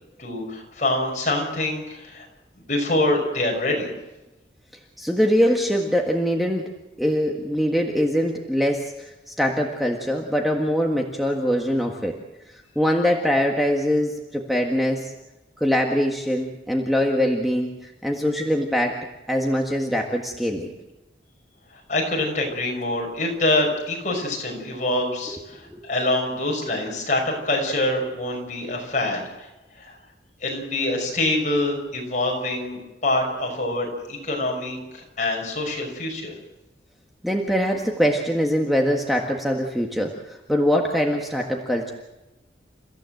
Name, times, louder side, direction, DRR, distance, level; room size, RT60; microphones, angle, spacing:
voice 1, 0.2-2.3 2.7-3.9 21.9-29.5 29.8-30.0 30.4-36.3, left 2 dB, 40° left, 1 dB, 6.0 m, -25 dB
voice 2, 5.0-6.7 7.0-12.1 12.7-15.1 15.6-17.7 18.0-19.0 19.3-20.7 25.7-25.8 37.2-41.9, equal, ahead, 0 dB, 1.6 m, -23 dB
29.5 x 15.0 x 7.9 m, 1.0 s
head